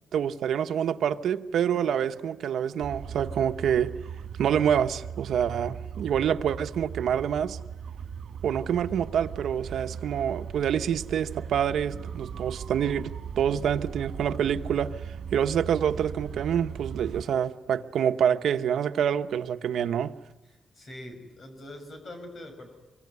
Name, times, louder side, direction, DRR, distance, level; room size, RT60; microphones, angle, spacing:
voice 1, 0.1-3.9 4.4-7.6 8.4-20.1, right 8 dB, 90° right, 1.0 m, -27 dB
sound 1, 2.8-17.2, right 7 dB, 60° right, 2.5 m, -38 dB
voice 2, 20.5-22.7, left 1 dB, 40° left, 6.1 m, -43 dB
25.0 x 25.0 x 9.7 m
wide cardioid pair, 180°, 0 cm